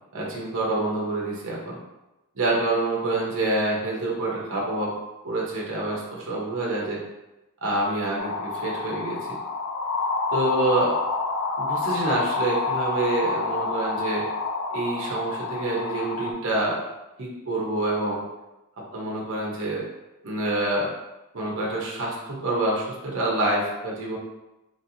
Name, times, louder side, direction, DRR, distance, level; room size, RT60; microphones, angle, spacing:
voice 1, 0.1-1.8 2.4-4.9 5.2-7.0 7.6-9.2 10.3-10.9 11.6-14.3 14.7-16.8 17.2-18.2 18.9-19.8 20.2-20.9 21.3-24.2, right 2 dB, 60° right, -3 dB, 0.8 m, -27 dB
sound 1, 8.2-16.3, left 3 dB, 75° left, 0.4 m, -28 dB
3.0 x 2.9 x 2.7 m, 0.97 s
head